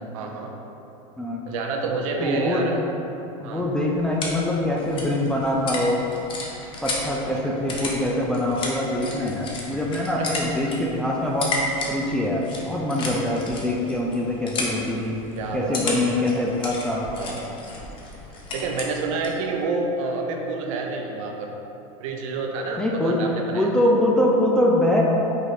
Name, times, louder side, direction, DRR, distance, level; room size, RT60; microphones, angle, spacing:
voice 1, 0.1-0.5 1.4-2.8 3.4-3.6 7.3-7.6 10.2-10.3 15.4-16.3 17.2-17.5 18.3-21.5 22.0-23.7, right 3 dB, 65° right, 1 dB, 0.7 m, -29 dB
voice 2, 1.2-1.5 2.2-2.7 3.4-6.0 6.8-11.5 11.9-15.2 15.5-17.1 22.8-25.0, left 1 dB, 5° left, -3 dB, 0.3 m, -24 dB
sound 1, 3.6-19.4, left 2 dB, 30° left, 0.7 m, -34 dB
4.9 x 2.6 x 4.0 m, 2.9 s
supercardioid pair, 130°, 18 cm